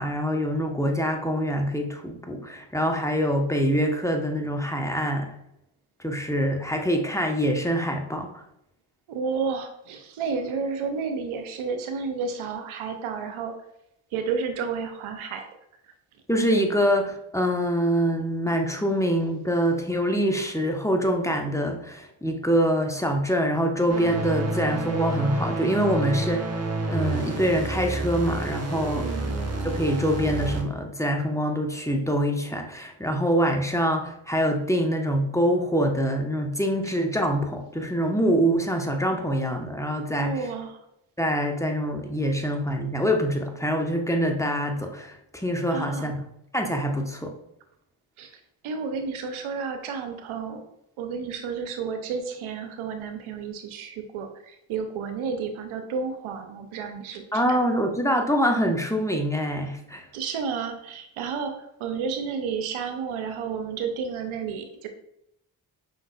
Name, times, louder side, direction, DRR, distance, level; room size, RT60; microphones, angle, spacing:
voice 1, 0.0-5.4 6.0-8.3 16.3-26.5 26.9-29.1 29.6-40.5 41.2-46.3 46.5-47.3 57.3-60.1, equal, 5° left, 2 dB, 1.0 m, -25 dB
voice 2, 9.1-13.5 14.1-15.5 28.9-29.4 40.2-40.8 45.7-46.1 48.2-48.3 48.6-50.6 51.0-57.6 60.1-64.9, right 5 dB, 90° right, 7 dB, 0.7 m, -31 dB
sound 1, 23.9-30.6, right 2 dB, 30° right, 1.1 m, -29 dB
5.6 x 3.8 x 2.3 m, 0.79 s
supercardioid pair, 40°, 48 cm